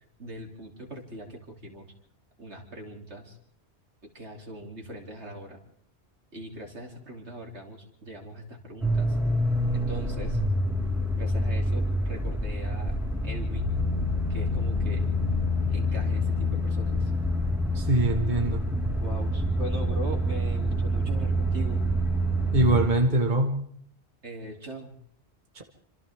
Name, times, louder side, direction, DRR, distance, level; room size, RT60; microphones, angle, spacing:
voice 1, 0.2-1.9 2.4-3.4 4.0-5.6 6.3-9.2 9.7-10.4 11.2-13.0 13.2-13.7 14.3-15.1 15.7-17.1 19.0-21.8 24.2-25.0, equal, 85° right, 1 dB, 3.6 m, -40 dB
sound 1, 8.8-22.9, equal, ahead, 4.5 m, -27 dB
voice 2, 17.8-18.6 22.5-23.5 25.6-25.7, right 2 dB, 45° right, 3 dB, 1.9 m, -23 dB
27.5 x 26.0 x 3.7 m, 0.63 s
omnidirectional pair, 1.1 m